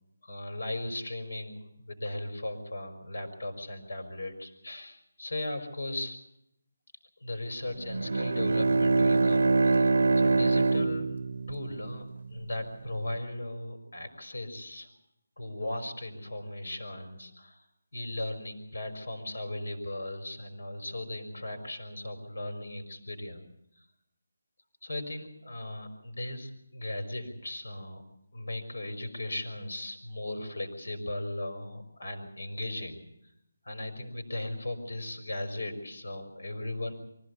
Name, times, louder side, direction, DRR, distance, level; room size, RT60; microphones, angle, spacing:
voice 1, 0.2-6.2 7.2-9.9 10.2-11.2 11.5-14.9 15.4-17.6 17.9-23.4 23.8-23.9 24.8-28.0 28.3-33.0 33.6-36.9, left 1 dB, 70° left, 7 dB, 5.4 m, -37 dB
Bowed string instrument, 7.8-12.5, right 3 dB, 70° right, 0.7 m, -25 dB
24.5 x 16.0 x 8.3 m, 0.80 s
figure-of-eight pair, 175°, 0 cm